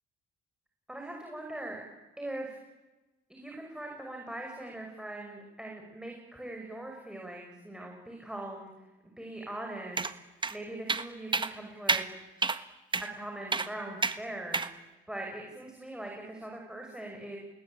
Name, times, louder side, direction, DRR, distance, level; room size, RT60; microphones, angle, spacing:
voice 1, 0.9-1.8 2.2-2.6 3.3-8.7 9.2-10.0 10.3-12.1 13.1-14.6 15.1-17.4, right 1 dB, 5° right, 0 dB, 6.2 m, -41 dB
sound 1, 10.0-10.1 10.4-10.5 10.9-11.1 11.3-11.5 11.9-12.0 12.4-12.6 12.9-13.1 13.5-13.7 14.0-14.2 14.5-14.7, right 3 dB, 25° right, 1.5 m, -28 dB
30.0 x 19.5 x 9.1 m, 1.1 s
cardioid pair, 90°, 20 cm